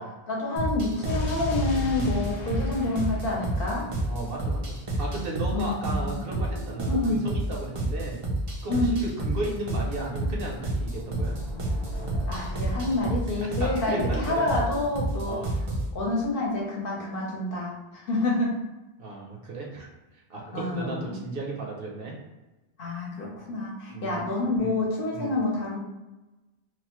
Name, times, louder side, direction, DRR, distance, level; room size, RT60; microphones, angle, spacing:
voice 1, 0.3-3.9 5.5-6.3 6.9-7.3 8.7-8.9 12.3-15.4 15.9-18.6 20.5-21.2 22.8-25.8, left 2 dB, 60° left, -3 dB, 0.8 m, -28 dB
sound 1, 0.6-15.9, right 1 dB, 45° right, 0.4 m, -30 dB
Explosion, 1.1-5.1, left 1 dB, 90° left, 0.9 m, -36 dB
voice 2, 4.0-8.2 8.6-11.4 13.6-14.4 15.3-15.5 19.0-19.9 20.3-22.1 23.9-24.2 24.6-24.8 25.1-25.3, right 2 dB, 60° right, -1 dB, 0.9 m, -34 dB
sound 2, 8.3-15.3, equal, 30° left, 0.5 m, -41 dB
3.1 x 2.1 x 2.9 m, 1.1 s
omnidirectional pair, 1.1 m